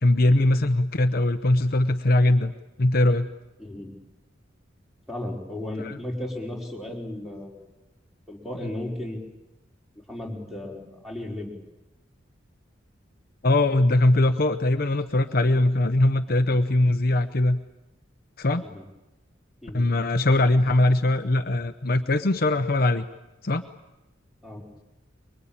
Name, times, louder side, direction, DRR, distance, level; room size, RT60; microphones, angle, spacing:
voice 1, 0.0-2.5 2.8-3.3 5.8-6.0 13.4-17.6 18.4-18.6 19.7-23.1 23.4-23.6, left 2 dB, 50° left, 8 dB, 0.9 m, -21 dB
voice 2, 3.6-3.9 5.1-7.7 8.3-9.2 10.1-11.5 18.6-18.8 19.6-19.9 24.4-24.6, left 1 dB, ahead, -1 dB, 4.8 m, -35 dB
24.0 x 23.0 x 8.8 m, 0.98 s
head